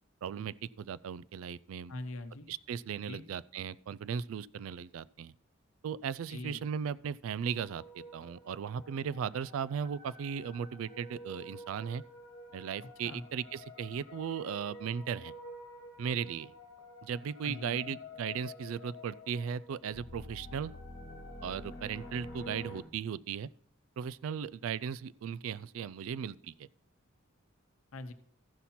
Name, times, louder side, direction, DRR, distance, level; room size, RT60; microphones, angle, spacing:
voice 1, 0.2-1.9 2.5-5.3 5.8-12.0 12.5-15.3 16.0-16.5 17.0-20.7 21.4-23.5 24.0-26.7, right 7 dB, 75° right, 0.3 m, -37 dB
voice 2, 1.9-2.5 3.1-3.2 6.3-6.6 12.8-13.2 17.4-18.0 27.9-28.1, left 2 dB, 85° left, 0.8 m, -43 dB
sound 1, 7.4-22.8, left 1 dB, 55° left, 1.4 m, -49 dB
14.0 x 5.8 x 4.2 m
head